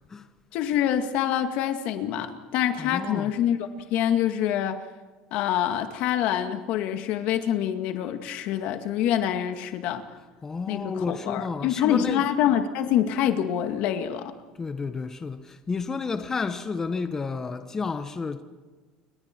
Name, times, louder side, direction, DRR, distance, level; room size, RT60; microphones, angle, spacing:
voice 1, 0.5-4.8 5.3-10.0 10.7-14.3, left 10 dB, 65° left, 2.1 m, -26 dB
voice 2, 2.8-3.3 10.4-12.3 14.6-18.4, left 4 dB, 20° left, 1.2 m, -31 dB
29.0 x 25.0 x 4.6 m
cardioid pair, 135°, 2 cm